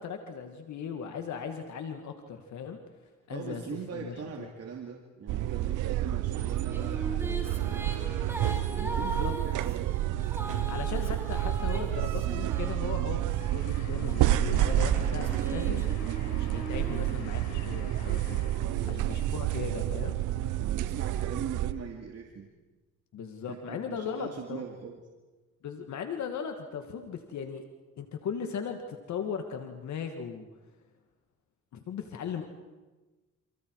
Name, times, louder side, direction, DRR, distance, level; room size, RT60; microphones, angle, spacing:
voice 1, 0.0-2.8 3.3-3.7 3.9-4.5 8.9-9.3 10.7-15.9 16.3-18.4 18.8-20.2 23.1-24.6 25.6-27.6 28.0-30.5 31.7-32.5, left 7 dB, 70° left, 5 dB, 2.1 m, -38 dB
voice 2, 3.3-7.8 8.7-10.0 18.6-19.5 20.6-22.5 23.5-25.0, right 7 dB, 55° right, 2 dB, 2.6 m, -41 dB
sound 1, 5.3-21.7, right 13 dB, 85° right, 0.9 m, -29 dB
Female singing, 6.4-13.3 14.0-17.8, equal, 10° right, 4.7 m, -41 dB
sound 2, 13.3-18.8, left 5 dB, 90° left, 4.9 m, -49 dB
29.5 x 28.0 x 4.8 m, 1.2 s
cardioid pair, 90°, 30 cm